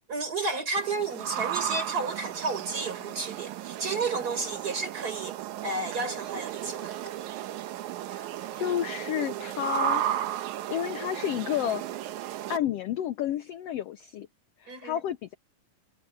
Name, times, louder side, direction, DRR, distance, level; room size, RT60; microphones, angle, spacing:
voice 1, 0.1-5.4 5.6-7.1 14.7-15.0, right 3 dB, 25° right, 4.9 m, -32 dB
sound 1, 0.8-12.6, right 12 dB, 75° right, 2.2 m, -34 dB
voice 2, 8.6-10.0 10.7-11.8 12.5-14.3 14.6-15.3, left 11 dB, 90° left, 1.3 m, -30 dB
omnidirectional pair, 3.7 m